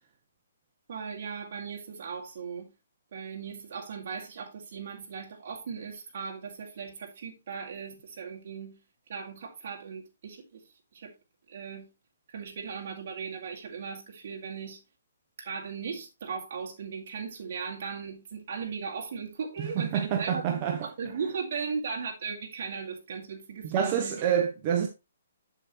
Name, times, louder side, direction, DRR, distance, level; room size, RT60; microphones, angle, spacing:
voice 1, 0.9-2.7 3.1-8.8 9.1-10.6 10.9-11.1 11.5-11.9 12.3-14.8 15.4-24.2, right 5 dB, 45° right, 2.3 m, -37 dB
voice 2, 19.6-20.8 23.6-24.9, right 8 dB, 25° right, 0.8 m, -27 dB
7.3 x 6.9 x 3.1 m
hypercardioid pair, 165°, 0 cm